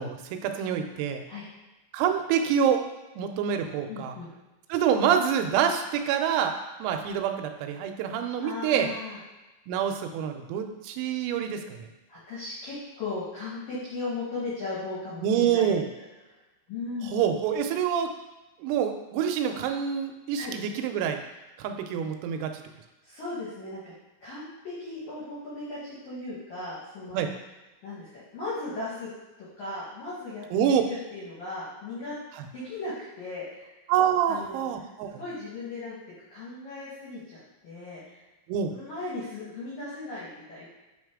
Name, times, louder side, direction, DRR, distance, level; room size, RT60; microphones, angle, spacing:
voice 1, 0.0-1.2 1.9-2.8 3.2-4.1 4.7-6.5 6.8-8.9 9.7-11.9 15.2-15.9 17.0-18.1 18.6-21.2 21.6-22.6 27.1-27.3 30.5-30.8 32.4-32.5 33.9-35.1 38.5-38.7, right 8 dB, 85° right, 6 dB, 3.3 m, -26 dB
voice 2, 3.9-4.3 8.4-9.2 12.1-15.8 16.7-17.1 20.4-20.5 23.0-23.9 24.2-27.2 27.8-29.1 29.6-30.4 30.8-32.1 32.5-33.7 34.3-34.7 35.1-36.0 36.3-38.2 38.7-40.7, left 3 dB, 70° left, -9 dB, 2.1 m, -37 dB
8.7 x 3.2 x 3.6 m, 1.1 s
omnidirectional pair, 6.0 m